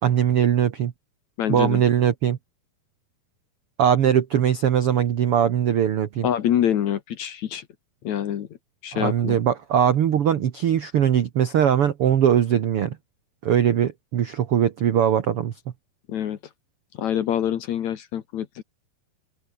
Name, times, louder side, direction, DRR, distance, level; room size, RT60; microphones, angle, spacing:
voice 1, 0.0-0.9 1.5-2.4 3.8-6.3 8.9-13.0 13.4-15.5, right 9 dB, 70° right, 1.3 m, -21 dB
voice 2, 1.4-1.8 6.2-7.7 8.0-8.5 8.8-9.4 16.1-16.4 17.0-18.6, left 10 dB, 60° left, 2.2 m, -25 dB
open air
omnidirectional pair, 4.4 m